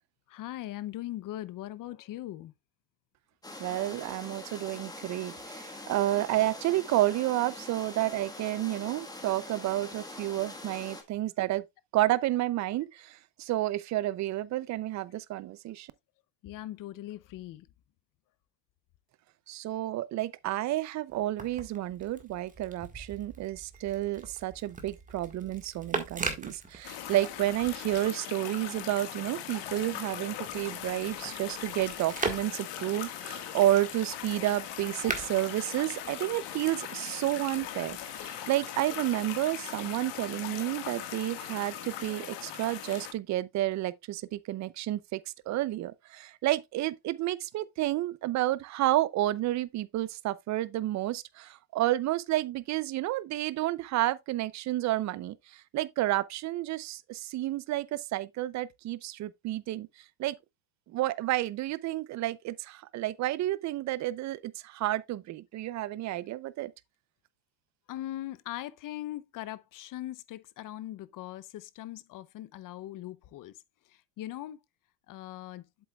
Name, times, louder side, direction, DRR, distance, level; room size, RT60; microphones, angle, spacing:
voice 1, 0.3-2.5 16.4-17.7 67.9-73.5 73.9-74.6 75.1-75.6, left 14 dB, 45° left, 0.6 m, -40 dB
sound 1, 3.4-11.0, left 2 dB, 10° left, 1.4 m, -44 dB
voice 2, 3.6-11.6 11.9-15.9 19.5-45.2 45.5-59.9 60.2-60.4 60.9-66.7, right 15 dB, 40° right, 0.5 m, -30 dB
sound 2, 21.1-28.1 28.5-36.6 37.4-38.2, right 4 dB, 15° right, 1.6 m, -41 dB
sound 3, 26.8-43.1, left 10 dB, 65° left, 1.7 m, -40 dB
7.8 x 7.7 x 2.3 m
cardioid pair, 130°, 46 cm